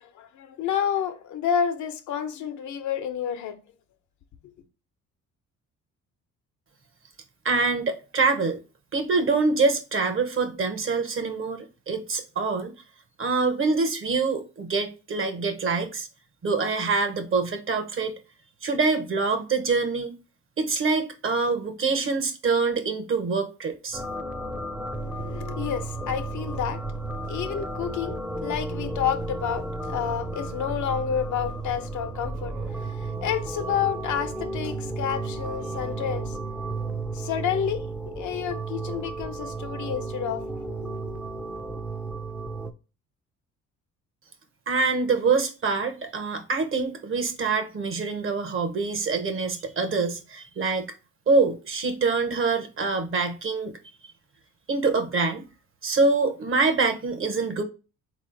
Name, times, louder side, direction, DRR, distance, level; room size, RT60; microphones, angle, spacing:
voice 1, 0.0-3.6 24.9-26.8 27.3-36.3 37.1-41.2, left 8 dB, 75° left, 0.8 m, -30 dB
voice 2, 7.4-8.6 8.9-12.7 13.2-16.1 16.4-18.1 18.6-20.1 20.6-24.0 44.7-50.9 51.3-53.7 54.7-55.4 55.8-57.6, right 4 dB, 45° right, 0.9 m, -25 dB
sound 1, 23.9-42.7, right 2 dB, 5° right, 0.5 m, -33 dB
4.0 x 3.1 x 3.8 m
cardioid pair, 90°, 30 cm